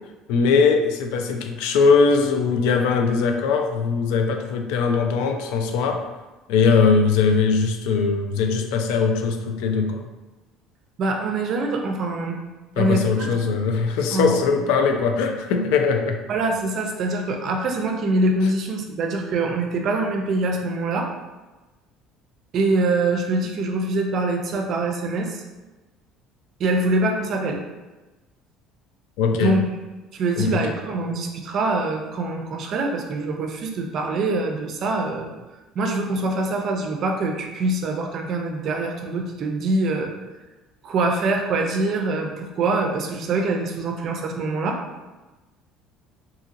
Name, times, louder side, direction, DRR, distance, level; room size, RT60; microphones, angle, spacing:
voice 1, 0.3-6.1 6.5-10.0 12.8-16.2 29.2-29.6 30.4-30.7, left 5 dB, 85° left, 5 dB, 0.3 m, -20 dB
voice 2, 11.0-12.4 12.8-13.6 14.1-14.4 16.3-21.1 22.5-25.4 26.6-27.6 29.3-29.6 30.1-35.3 35.8-40.1 40.8-44.8, right 2 dB, 50° right, 3 dB, 0.5 m, -24 dB
2.8 x 2.7 x 2.5 m, 1.1 s
supercardioid pair, 105°, 0 cm